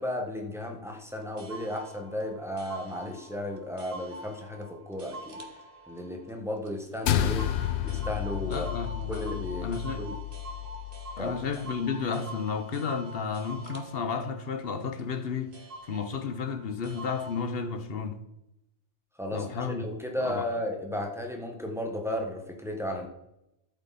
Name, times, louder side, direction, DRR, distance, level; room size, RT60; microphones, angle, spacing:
voice 1, 0.0-5.4 5.9-7.5 7.8-8.7 9.1-10.2 11.2-11.4 19.2-23.1, left 1 dB, ahead, 1.5 m, -34 dB
sound 1, 1.1-15.3 15.5-17.7, right 1 dB, 60° right, 1.4 m, -45 dB
sound 2, 7.1-11.6, left 11 dB, 90° left, 0.9 m, -31 dB
voice 2, 8.5-10.0 11.2-15.5 15.9-18.2 19.3-19.9 20.2-20.5, left 5 dB, 65° left, 1.2 m, -32 dB
13.0 x 7.9 x 4.3 m
omnidirectional pair, 1.1 m